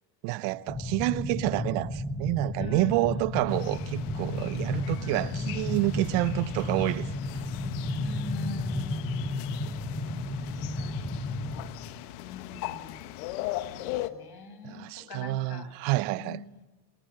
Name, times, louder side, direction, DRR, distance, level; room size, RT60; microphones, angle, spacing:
voice 1, 0.2-7.1 14.6-16.4, right 19 dB, 80° right, 0.9 m, -28 dB
sound 1, 0.7-11.7, left 2 dB, 20° left, 7.2 m, -33 dB
voice 2, 2.6-3.2 5.0-5.6 7.8-9.6 10.4-11.3 12.2-13.0 13.8-15.7 16.2-16.4, left 4 dB, 55° left, 7.9 m, -43 dB
sound 2, 3.5-14.1, left 15 dB, 85° left, 1.4 m, -39 dB
28.0 x 20.5 x 8.8 m
hypercardioid pair, 65°, 47 cm